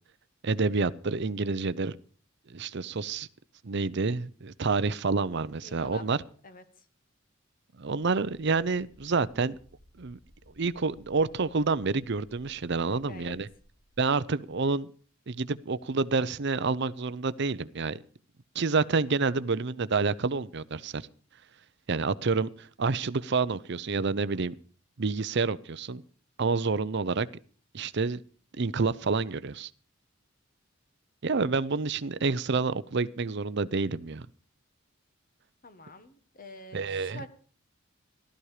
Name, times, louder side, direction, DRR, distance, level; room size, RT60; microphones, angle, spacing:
voice 1, 0.4-2.0 2.5-3.3 3.6-6.2 7.8-9.6 10.0-10.2 10.6-13.5 14.0-14.9 15.3-18.0 18.5-21.1 21.9-24.5 25.0-26.0 26.4-27.3 27.7-28.2 28.6-29.7 31.2-34.3 36.7-37.2, right 4 dB, 55° right, 16 dB, 0.7 m, -28 dB
voice 2, 5.6-6.0 6.4-6.9 12.9-13.4 31.2-31.4 35.6-37.3, left 2 dB, 45° left, 10 dB, 1.6 m, -47 dB
sound 1, 8.2-14.1, equal, 85° left, 4.7 m, -59 dB
15.5 x 12.5 x 4.9 m, 0.43 s
head